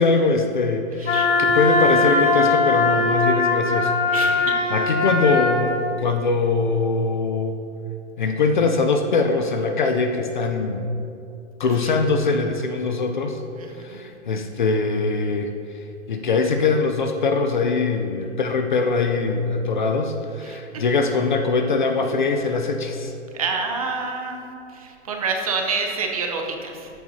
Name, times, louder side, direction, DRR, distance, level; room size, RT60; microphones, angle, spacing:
voice 1, 0.0-3.9 4.2-4.4 4.7-7.6 8.2-10.9 11.6-13.4 13.8-15.5 16.1-23.1, left 4 dB, 40° left, 5 dB, 0.5 m, -22 dB
voice 2, 1.0-1.3 4.1-4.5 13.6-14.0 20.4-20.6 23.3-26.9, right 4 dB, 30° right, 2 dB, 0.7 m, -28 dB
Wind instrument woodwind instrument, 1.1-5.6, left 3 dB, 90° left, 1.7 m, -20 dB
13.5 x 7.8 x 2.7 m, 2.7 s
hypercardioid pair, 180°, 36 cm